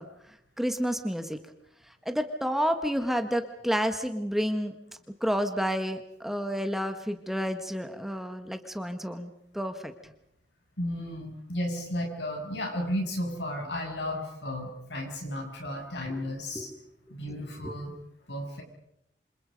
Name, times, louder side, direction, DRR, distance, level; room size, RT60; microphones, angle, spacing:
voice 1, 0.0-1.4 1.9-4.8 5.2-10.1 16.1-16.2 16.5-16.8 17.6-17.8, equal, ahead, 7 dB, 1.4 m, -30 dB
voice 2, 10.8-16.7 17.1-18.0 18.3-18.6, left 1 dB, 70° left, 2 dB, 7.2 m, -33 dB
28.0 x 27.0 x 5.3 m, 0.77 s
head